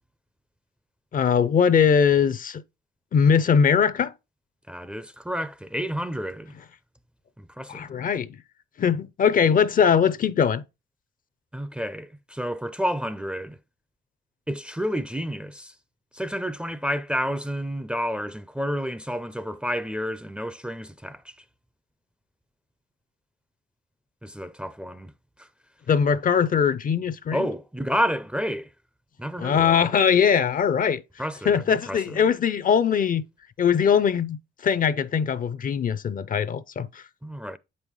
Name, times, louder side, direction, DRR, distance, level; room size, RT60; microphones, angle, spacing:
voice 1, 1.1-2.6 3.1-4.1 7.7-8.4 8.8-10.6 25.9-27.5 29.4-31.0 31.5-33.2 33.6-37.0, left 7 dB, 45° left, 0.5 m, -21 dB
voice 2, 4.7-6.5 7.4-7.9 11.5-13.6 14.5-15.7 16.1-21.3 24.2-25.1 25.4-25.5 27.3-28.7 29.2-29.9 31.2-32.3 37.2-37.6, equal, 5° right, 0.5 m, -30 dB
7.8 x 5.5 x 3.1 m
cardioid pair, 90°, 20 cm